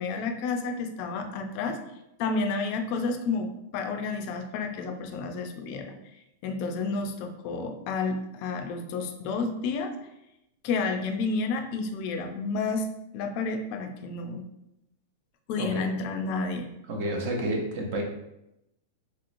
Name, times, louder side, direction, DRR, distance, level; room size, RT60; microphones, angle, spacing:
voice 1, 0.0-1.8 2.2-5.9 6.4-9.9 10.6-12.9 13.1-14.4 15.5-16.7, left 4 dB, 45° left, 4 dB, 0.4 m, -30 dB
voice 2, 16.9-18.0, right 1 dB, 55° right, 1 dB, 0.8 m, -30 dB
3.0 x 2.9 x 2.5 m, 0.85 s
supercardioid pair, 145°, 0 cm